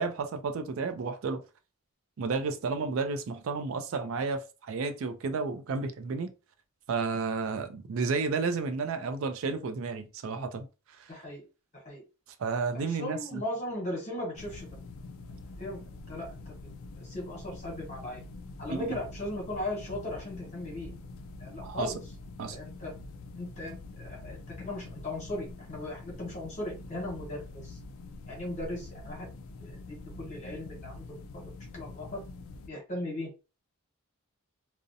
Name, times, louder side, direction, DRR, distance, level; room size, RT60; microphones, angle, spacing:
voice 1, 0.0-1.4 2.2-6.3 6.9-10.7 12.4-13.4 18.7-19.0 21.6-21.9 22.4-22.6, right 4 dB, 65° right, 0.4 m, -32 dB
voice 2, 11.1-11.4 11.8-12.0 12.7-14.7 15.6-15.8 16.1-16.3 16.9-18.2 18.6-20.9 21.4-22.0 22.5-22.9 23.4-27.8 28.3-29.3 29.6-31.1 31.3-32.2 32.7-33.3, left 1 dB, 30° left, 1.0 m, -38 dB
sound 1, 14.3-32.7, left 3 dB, 65° left, 0.3 m, -45 dB
2.6 x 2.0 x 2.6 m
head